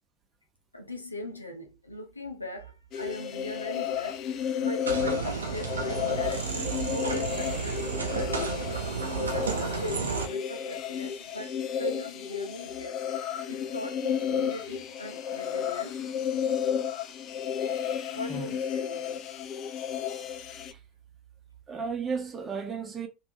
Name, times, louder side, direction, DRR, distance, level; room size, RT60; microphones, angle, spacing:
voice 1, 0.7-8.6 9.2-13.0 13.5-16.0 17.6-17.7 18.1-19.2, left 1 dB, 85° left, 0.6 m, -40 dB
sound 1, 2.9-20.7, left 8 dB, 40° left, 0.4 m, -32 dB
sound 2, 4.9-10.3, right 5 dB, 75° right, 0.7 m, -32 dB
voice 2, 21.7-23.1, right 5 dB, 25° right, 0.9 m, -34 dB
3.4 x 2.7 x 2.7 m
figure-of-eight pair, 80°, 0 cm